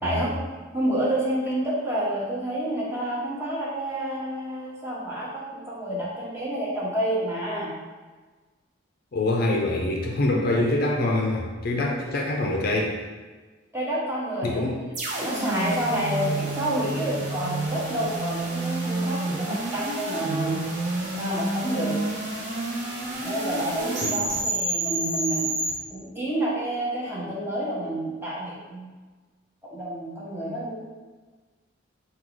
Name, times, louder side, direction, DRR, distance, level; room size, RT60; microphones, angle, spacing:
voice 1, 0.0-0.4 0.7-7.7 13.7-14.9 15.2-20.6 21.2-22.0 23.2-25.5 25.9-29.0 29.6-30.8, right 1 dB, 10° right, -6 dB, 0.8 m, -29 dB
voice 2, 9.1-13.0 14.4-14.8 24.0-24.2, left 2 dB, 50° left, -1 dB, 0.5 m, -25 dB
sound 1, 14.9-25.7, right 2 dB, 40° right, 0.7 m, -29 dB
4.5 x 2.3 x 3.8 m, 1.3 s
head